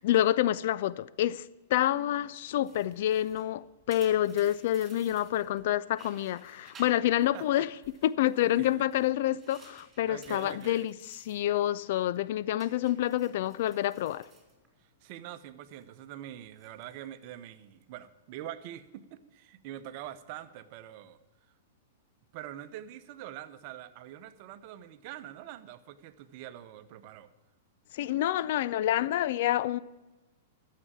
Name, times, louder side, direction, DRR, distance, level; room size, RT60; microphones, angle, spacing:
voice 1, 0.0-1.4 1.7-7.7 8.0-14.3 27.9-29.8, left 13 dB, 55° left, 0.4 m, -28 dB
sound 1, 2.6-5.6 5.9-7.5 7.8-11.5 11.8-12.2 12.6-15.2 15.5-15.8 16.4-17.1, right 4 dB, 20° right, 3.9 m, -57 dB
voice 2, 7.3-7.7 8.4-8.7 10.1-10.9 14.8-21.2 22.3-27.3, right 12 dB, 45° right, 0.8 m, -44 dB
12.0 x 7.6 x 8.5 m
figure-of-eight pair, 105°, 0 cm